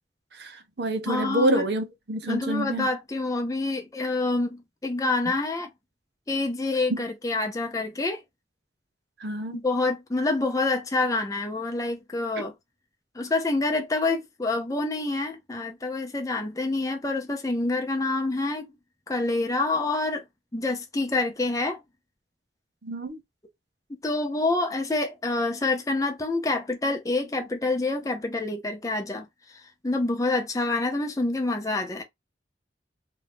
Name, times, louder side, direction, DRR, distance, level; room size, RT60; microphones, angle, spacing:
voice 1, 0.3-2.9 6.9-7.0 9.2-9.6 22.8-23.2, right 1 dB, 70° right, 0.8 m, -27 dB
voice 2, 1.1-1.6 2.3-5.7 6.3-8.2 9.5-12.5 13.1-18.7 19.1-20.2 20.5-21.8 24.0-32.0, left 2 dB, 20° left, 0.6 m, -27 dB
2.8 x 2.6 x 3.4 m
head